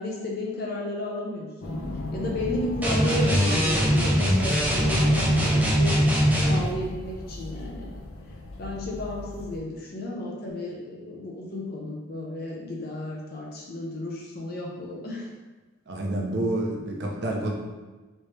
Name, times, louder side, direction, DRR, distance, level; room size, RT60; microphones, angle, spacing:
voice 1, 0.0-1.8 2.1-6.0 6.5-7.9 8.6-15.3, left 1 dB, 45° left, -2 dB, 0.7 m, -33 dB
sound 1, 1.6-9.6, left 1 dB, 90° left, 0.5 m, -36 dB
sound 2, 2.8-6.7, equal, 10° right, 0.4 m, -21 dB
voice 2, 15.9-17.5, right 1 dB, 55° right, -1 dB, 0.6 m, -28 dB
3.2 x 2.9 x 3.3 m, 1.2 s
head